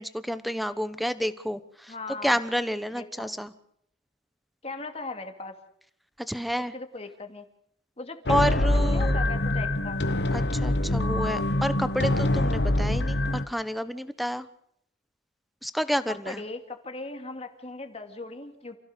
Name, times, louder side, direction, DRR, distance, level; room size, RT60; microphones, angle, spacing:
voice 1, 0.0-1.9 2.2-3.5 6.3-6.7 8.3-9.2 10.3-14.5 15.6-16.4, equal, ahead, 13 dB, 1.0 m, -29 dB
voice 2, 1.9-2.4 2.9-3.3 4.6-5.6 6.6-7.4 8.0-8.2 8.5-10.0 16.1-18.8, left 3 dB, 35° left, 6 dB, 2.4 m, -38 dB
sound 1, 8.3-13.4, left 1 dB, 70° left, 1.3 m, -25 dB
28.5 x 16.0 x 6.8 m, 0.70 s
head